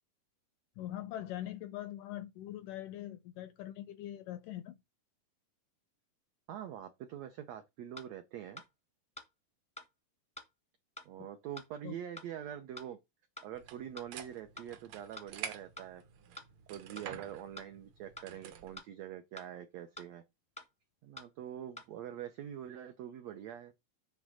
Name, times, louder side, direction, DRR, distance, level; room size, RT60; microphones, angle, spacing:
voice 1, 0.8-4.8 11.8-11.9, left 13 dB, 80° left, 1.9 m, -42 dB
voice 2, 6.5-8.6 11.0-13.0 13.4-16.0 16.7-20.2 21.0-23.7, right 10 dB, 90° right, 1.5 m, -44 dB
sound 1, 8.0-8.1 8.6-8.7 9.2-9.3 9.8-9.9 10.4-10.5 11.0-11.1 11.6-11.7 12.2-12.3 12.8-12.9 13.4-13.5 14.0-14.1 14.6-14.7 15.2-15.3 15.8-15.9 16.4-16.5 17.0-17.1 17.6-17.7 18.2-18.3 18.8-18.9 19.4-19.5 20.0-20.1 20.6-20.7 21.2-21.3 21.8-21.9, left 1 dB, 10° left, 0.4 m, -47 dB
sound 2, 13.5-18.8, right 8 dB, 65° right, 1.7 m, -48 dB
9.5 x 3.5 x 6.3 m
omnidirectional pair, 4.3 m